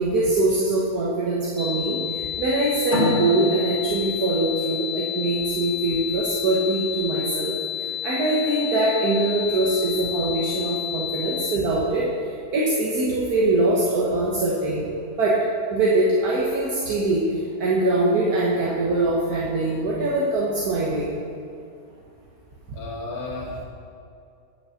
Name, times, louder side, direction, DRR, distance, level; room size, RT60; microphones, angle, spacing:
voice 1, 0.0-7.5 8.0-12.0 12.5-14.8 15.2-15.3 15.7-17.2 17.6-21.1, right 2 dB, 75° right, -5 dB, 1.6 m, -23 dB
sound 1, 1.6-11.6, left 11 dB, 25° left, 0.7 m, -31 dB
sound 2, 2.9-6.1, left 2 dB, 45° left, 2.3 m, -28 dB
voice 2, 22.7-23.6, left 2 dB, 70° left, -5 dB, 2.5 m, -33 dB
10.0 x 5.3 x 6.4 m, 2.5 s
omnidirectional pair, 1.7 m